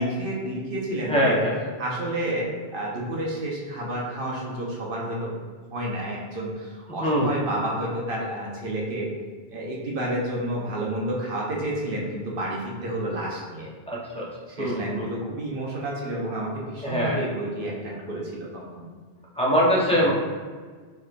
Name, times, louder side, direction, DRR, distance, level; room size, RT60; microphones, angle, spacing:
voice 1, 0.0-1.4 1.8-5.3 5.7-9.1 9.5-13.7 14.5-17.7 18.1-18.8, right 1 dB, 55° right, -3 dB, 0.9 m, -30 dB
voice 2, 1.1-1.6 7.0-7.3 13.9-14.3 14.6-15.1 16.8-17.2 19.3-20.1, equal, 5° left, -5 dB, 0.5 m, -23 dB
4.5 x 3.3 x 2.4 m, 1.5 s
omnidirectional pair, 1.2 m